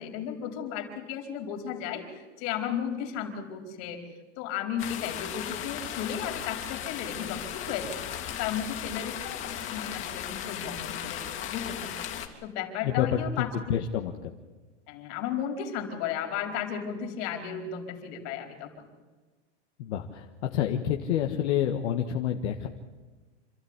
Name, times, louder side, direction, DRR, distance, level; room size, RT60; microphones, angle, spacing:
voice 1, 0.0-4.0 4.4-7.9 8.4-11.2 11.5-12.0 12.4-13.5 14.9-18.9, left 8 dB, 50° left, 4 dB, 4.6 m, -34 dB
sound 1, 4.8-12.3, left 10 dB, 35° left, 2.9 m, -36 dB
voice 2, 12.8-14.3 19.8-22.7, left 9 dB, 70° left, 3 dB, 1.8 m, -28 dB
27.5 x 13.0 x 9.9 m, 1.3 s
supercardioid pair, 140°, 35 cm